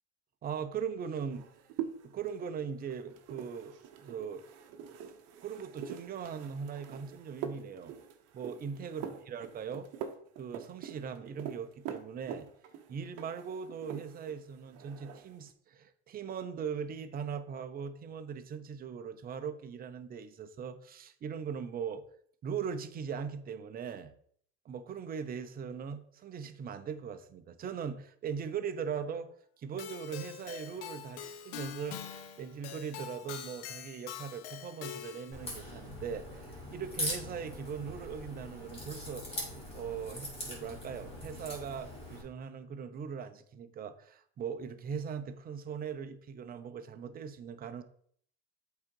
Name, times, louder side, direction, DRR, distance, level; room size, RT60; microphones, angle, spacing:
voice 1, 0.4-1.5 2.0-3.8 4.0-4.4 5.4-7.9 8.3-9.9 10.4-12.5 12.9-22.0 22.4-24.1 24.6-29.3 29.6-32.1 32.4-47.8, right 7 dB, 25° right, 0.7 m, -40 dB
sound 1, 1.3-14.4 14.7-15.4, right 8 dB, 50° right, 1.0 m, -44 dB
Keyboard (musical), 29.8-35.4, left 10 dB, 80° left, 1.0 m, -44 dB
Crack, 35.3-42.2, left 1 dB, 15° left, 3.0 m, -41 dB
8.3 x 3.9 x 4.6 m
supercardioid pair, 120°, 33 cm